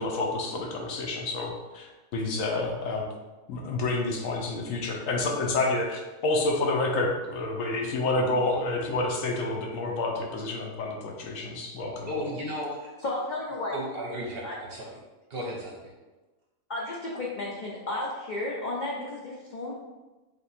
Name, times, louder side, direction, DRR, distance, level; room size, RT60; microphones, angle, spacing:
voice 1, 0.0-3.0 3.5-12.3, left 2 dB, 70° left, 1 dB, 1.0 m, -29 dB
voice 2, 12.0-12.9 13.7-15.0 15.3-15.9, equal, 50° right, -3 dB, 0.9 m, -35 dB
voice 3, 13.0-13.7 14.4-14.6 16.7-19.7, left 2 dB, 55° left, -4 dB, 0.5 m, -33 dB
3.5 x 2.9 x 4.1 m, 1.2 s
omnidirectional pair, 1.5 m